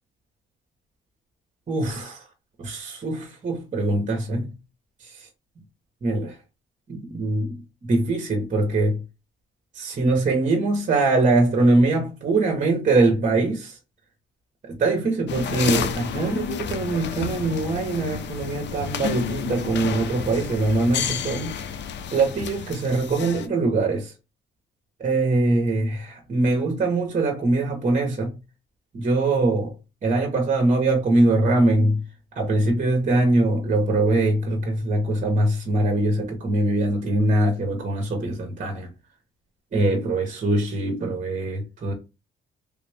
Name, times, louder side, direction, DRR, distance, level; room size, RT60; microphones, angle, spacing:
voice 1, 1.7-2.3 2.6-4.5 5.0-5.3 6.0-6.4 6.9-9.0 9.7-13.8 14.6-21.8 22.1-24.1 25.0-28.3 28.9-29.7 30.0-32.0 32.3-38.9 39.7-41.9, right 2 dB, 40° right, 1.0 m, -22 dB
sound 1, 15.3-23.5, left 8 dB, 65° left, 0.5 m, -30 dB
3.4 x 2.5 x 3.3 m
cardioid pair, 90°, 20 cm